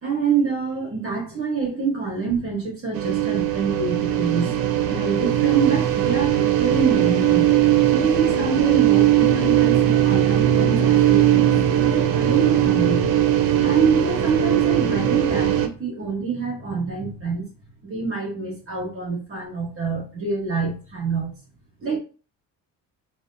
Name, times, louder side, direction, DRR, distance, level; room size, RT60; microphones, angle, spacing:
voice 1, 0.0-4.6 4.9-7.5 7.9-13.1 13.6-17.5 17.8-21.3 21.8-22.0, right 5 dB, 40° right, -2 dB, 1.0 m, -26 dB
sound 1, 2.9-15.7, right 11 dB, 85° right, 0.5 m, -19 dB
2.5 x 2.2 x 2.6 m, 0.36 s
cardioid pair, 105°, 35 cm